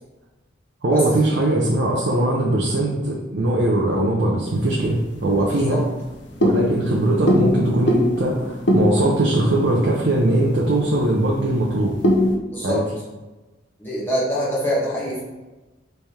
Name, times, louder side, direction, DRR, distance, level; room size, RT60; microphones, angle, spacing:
voice 1, 0.8-5.8 6.4-11.9 12.6-12.8, right 1 dB, 60° right, -3 dB, 0.6 m, -20 dB
sound 1, 4.5-12.4, left 1 dB, 65° left, 0.6 m, -24 dB
voice 2, 5.4-5.8 12.5-12.8 13.8-15.2, equal, 10° left, -8 dB, 1.3 m, -24 dB
3.5 x 3.4 x 4.2 m, 1.1 s
head